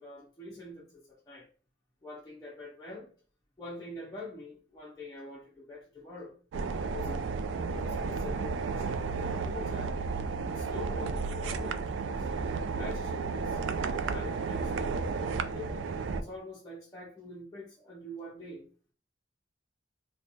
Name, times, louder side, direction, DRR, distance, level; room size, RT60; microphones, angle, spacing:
voice 1, 0.0-1.5 2.0-3.1 3.6-6.4 6.8-7.3 7.5-10.0 10.5-12.3 12.7-15.0 15.4-18.6, left 2 dB, 20° left, 0.6 m, -45 dB
sound 1, 6.5-16.2, right 4 dB, 90° right, 0.3 m, -33 dB
4.3 x 2.2 x 2.6 m
head